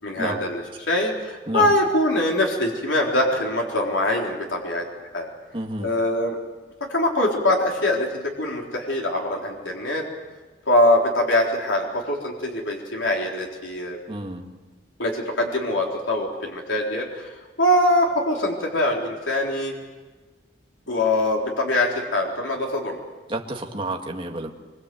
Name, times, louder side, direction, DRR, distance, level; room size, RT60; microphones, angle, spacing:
voice 1, 0.0-4.8 5.1-5.3 5.8-6.4 6.9-10.1 10.7-14.0 15.0-17.3 17.6-19.7 20.9-23.0, left 1 dB, 90° left, -1 dB, 4.1 m, -23 dB
voice 2, 5.5-5.9 14.1-14.5 23.3-24.5, right 1 dB, 30° right, 2 dB, 2.2 m, -30 dB
25.0 x 23.5 x 7.9 m, 1.3 s
head